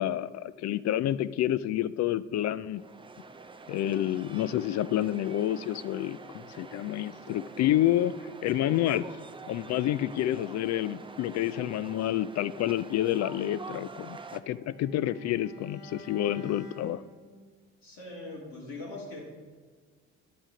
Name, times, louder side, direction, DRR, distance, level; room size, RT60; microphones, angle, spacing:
voice 1, 0.0-2.8 3.7-9.1 9.5-17.0, left 12 dB, 50° left, 16 dB, 0.4 m, -29 dB
sound 1, 2.7-14.4, right 4 dB, 15° right, 0.6 m, -46 dB
Bowed string instrument, 13.5-17.6, right 1 dB, 90° left, 2.3 m, -50 dB
voice 2, 17.8-19.2, left 2 dB, 70° left, -4 dB, 2.9 m, -41 dB
9.7 x 6.2 x 5.0 m, 1.5 s
hypercardioid pair, 60°, 36 cm